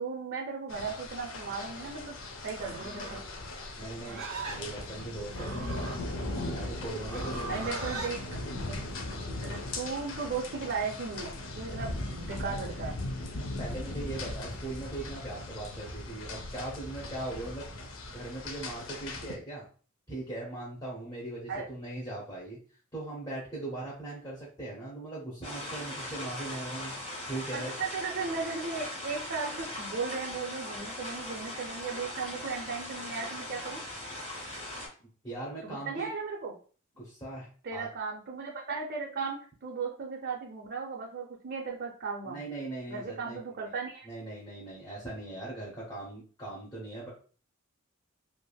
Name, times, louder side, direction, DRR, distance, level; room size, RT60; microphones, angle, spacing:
voice 1, 0.0-2.2 2.4-3.2 7.5-8.2 8.7-8.8 9.4-13.0 21.5-21.7 27.5-33.8 35.6-36.5 37.6-42.4 42.9-44.1, right 5 dB, 50° right, -2 dB, 0.5 m, -36 dB
sound 1, 0.7-19.4, left 2 dB, 65° left, 0.5 m, -39 dB
Livestock farm animals working animals, 2.5-8.2, right 3 dB, 90° right, 0.8 m, -40 dB
voice 2, 3.8-4.2 4.5-5.7 6.5-7.6 13.6-17.6 18.1-19.7 20.1-22.6 22.9-27.0 27.3-27.8 35.2-36.1 37.0-37.9 42.2-43.4 43.6-43.7 44.0-47.1, right 2 dB, 15° left, -6 dB, 0.8 m, -39 dB
sound 2, 25.4-34.9, left 1 dB, 35° left, 1.4 m, -39 dB
3.3 x 2.4 x 2.2 m, 0.40 s
head